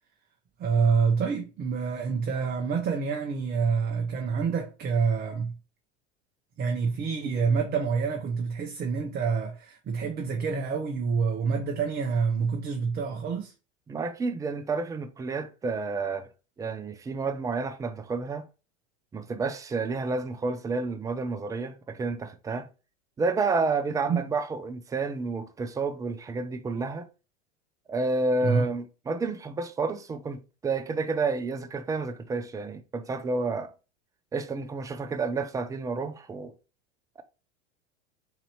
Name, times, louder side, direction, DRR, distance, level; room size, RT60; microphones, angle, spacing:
voice 1, 0.6-5.5 6.6-13.5 24.1-24.3 28.4-28.7, right 5 dB, 25° right, 0.7 m, -27 dB
voice 2, 13.9-16.3 16.6-18.5 19.1-22.7 23.2-27.1 27.9-33.7 34.3-36.5, right 3 dB, 10° right, 0.3 m, -30 dB
4.0 x 2.9 x 3.1 m
hypercardioid pair, 95°, 36 cm